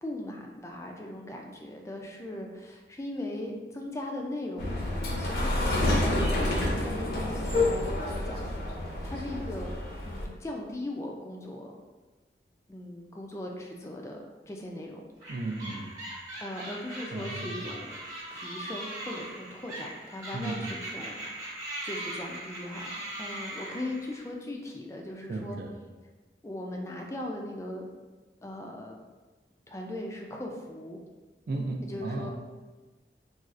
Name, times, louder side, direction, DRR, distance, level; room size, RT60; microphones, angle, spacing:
voice 1, 0.0-6.4 6.8-9.7 10.1-11.7 12.7-14.2 14.5-15.0 16.4-18.0 18.3-21.5 21.8-25.6 26.4-27.9 28.4-29.0 29.7-31.0 31.9-32.3, left 1 dB, 15° left, 1 dB, 0.3 m, -39 dB
sound 1, 4.6-10.2, left 1 dB, 60° left, 0.6 m, -28 dB
sound 2, 15.2-24.3, right 1 dB, 20° right, 0.9 m, -40 dB
voice 2, 15.3-15.9 17.1-17.6 20.3-20.7 25.3-25.7 31.5-32.3, right 2 dB, 55° right, 3 dB, 0.4 m, -34 dB
4.0 x 2.3 x 2.4 m, 1.2 s
head